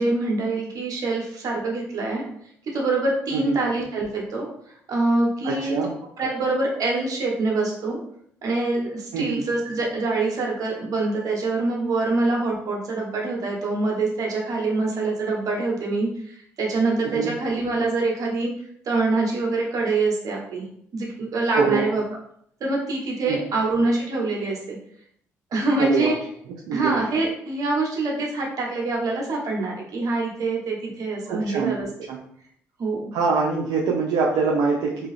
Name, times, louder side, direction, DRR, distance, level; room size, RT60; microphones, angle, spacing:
voice 1, 0.0-2.2 2.7-4.5 4.9-5.7 6.2-8.0 8.4-18.5 18.8-20.6 20.9-22.0 22.6-24.8 25.5-26.1 26.7-31.9 32.8-33.1, right 3 dB, 60° right, -2 dB, 1.1 m, -25 dB
voice 2, 5.4-5.9 9.1-9.4 17.2-17.3 21.5-21.8 23.3-23.4 25.8-26.1 26.7-26.9 31.3-31.7 32.1-32.2 33.1-35.1, right 5 dB, 80° right, -3 dB, 0.5 m, -23 dB
2.7 x 2.3 x 3.2 m, 0.67 s
supercardioid pair, 55°, 7 cm